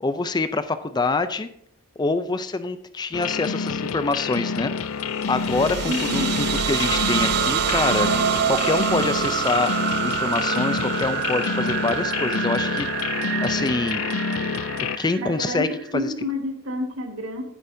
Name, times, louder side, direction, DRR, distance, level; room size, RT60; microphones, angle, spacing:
voice 1, 0.0-1.5 2.0-4.7 5.3-8.1 8.5-9.7 10.0-14.0 14.8-15.7 15.9-16.1, left 3 dB, 20° left, 12 dB, 0.4 m, -25 dB
sound 1, 3.1-15.0, left 5 dB, 85° left, 0.5 m, -27 dB
sound 2, 5.3-15.9, right 10 dB, 50° right, 0.3 m, -26 dB
voice 2, 5.8-6.3 15.2-17.4, left 1 dB, 75° right, 4 dB, 1.6 m, -29 dB
11.5 x 9.8 x 2.7 m, 0.68 s
head